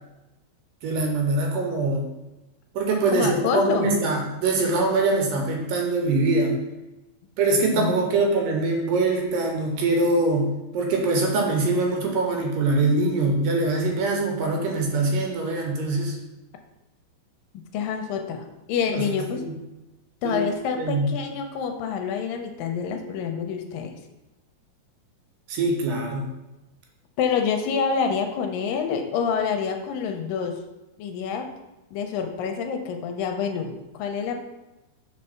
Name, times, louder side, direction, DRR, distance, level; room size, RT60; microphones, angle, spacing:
voice 1, 0.8-2.1 2.7-6.6 7.4-16.2 18.9-19.0 19.4-19.5 20.2-20.5 20.8-21.1 25.5-26.3, right 2 dB, 75° right, 1 dB, 2.5 m, -23 dB
voice 2, 3.1-3.9 7.7-7.9 17.7-19.5 20.2-23.9 27.2-30.6 31.0-31.5 31.9-34.4, left 6 dB, 85° left, 5 dB, 2.3 m, -27 dB
5.0 x 4.3 x 5.7 m, 1.0 s
omnidirectional pair, 4.1 m